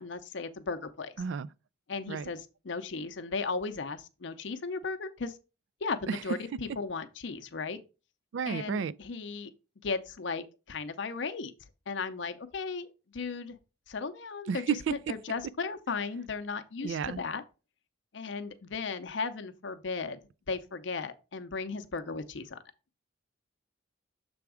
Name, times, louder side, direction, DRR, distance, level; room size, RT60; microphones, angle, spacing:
voice 1, 0.0-1.2 1.9-5.4 5.8-7.8 8.5-9.5 9.8-11.5 11.9-12.9 13.1-13.6 13.9-14.8 15.1-17.4 18.1-20.2 20.5-22.6, left 4 dB, 65° left, 0.6 m, -36 dB
voice 2, 1.2-1.5 2.1-2.3 6.1-6.2 8.3-8.9 14.5-14.9 16.8-17.2, right 6 dB, 70° right, 0.3 m, -31 dB
6.9 x 3.5 x 4.8 m
head